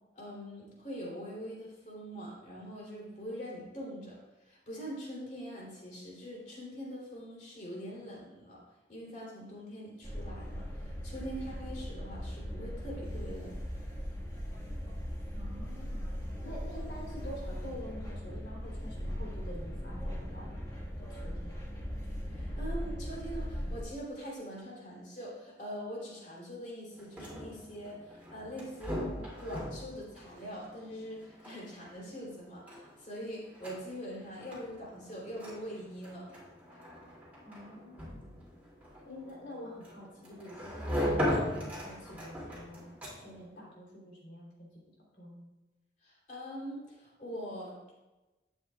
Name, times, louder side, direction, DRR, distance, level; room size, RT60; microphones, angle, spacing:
voice 1, 0.1-8.6 8.9-13.6 22.3-29.0 29.4-36.3 46.0-47.9, equal, 45° left, -5 dB, 3.0 m, -43 dB
sound 1, 10.0-23.8, equal, 20° left, 1.5 m, -39 dB
voice 2, 15.3-16.2 16.4-20.6 21.0-21.6 37.4-38.5 39.0-44.7 45.1-45.5, equal, 70° left, -3 dB, 3.1 m, -47 dB
sound 2, 26.9-43.5, equal, 10° right, 2.5 m, -39 dB
11.5 x 7.9 x 2.3 m, 1.1 s
head